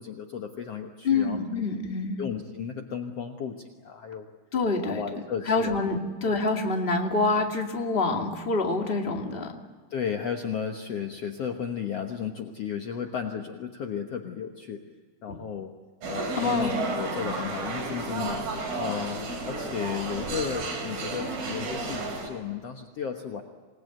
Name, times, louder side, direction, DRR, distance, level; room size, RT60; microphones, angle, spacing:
voice 1, 0.0-1.4 2.2-4.3 4.8-5.8 9.9-14.8 15.2-15.7 16.1-18.4 18.8-23.4, left 7 dB, 75° left, 4 dB, 1.4 m, -34 dB
voice 2, 1.0-2.2 4.5-5.0 5.4-9.6 15.3-15.4 16.3-16.9, left 3 dB, 20° left, 2 dB, 1.5 m, -26 dB
sound 1, 16.0-22.3, right 3 dB, 60° right, 6.1 m, -32 dB
27.0 x 20.0 x 9.3 m, 1.4 s
omnidirectional pair, 4.8 m